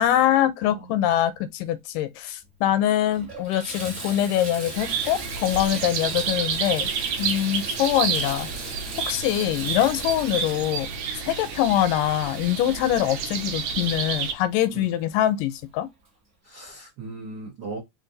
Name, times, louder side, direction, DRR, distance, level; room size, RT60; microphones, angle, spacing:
voice 1, 0.0-6.9 7.2-8.5 9.1-10.9 11.2-15.9, left 12 dB, 85° left, 2.2 m, -24 dB
voice 2, 0.6-1.1 14.7-14.9 16.4-17.8, right 3 dB, 85° right, 0.9 m, -38 dB
Water tap faucet / Bathtub (filling or washing), 2.4-2.5 3.0-15.4 16.1-16.2 16.7-16.8, right 2 dB, 45° right, 0.9 m, -39 dB
sound 1, 4.7-14.3, right 7 dB, 70° right, 1.8 m, -30 dB
4.9 x 2.6 x 3.8 m
omnidirectional pair, 3.7 m